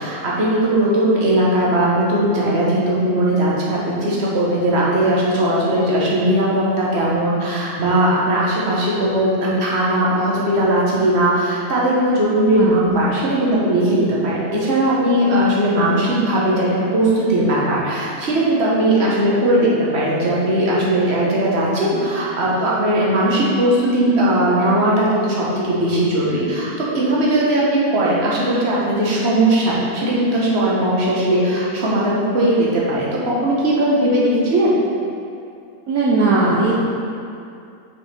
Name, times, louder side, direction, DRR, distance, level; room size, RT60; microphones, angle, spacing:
voice 1, 0.0-34.8, right 1 dB, 45° right, -6 dB, 1.4 m, -18 dB
voice 2, 35.9-36.7, right 3 dB, 70° right, -6 dB, 1.2 m, -17 dB
5.7 x 5.2 x 4.3 m, 2.5 s
omnidirectional pair, 1.6 m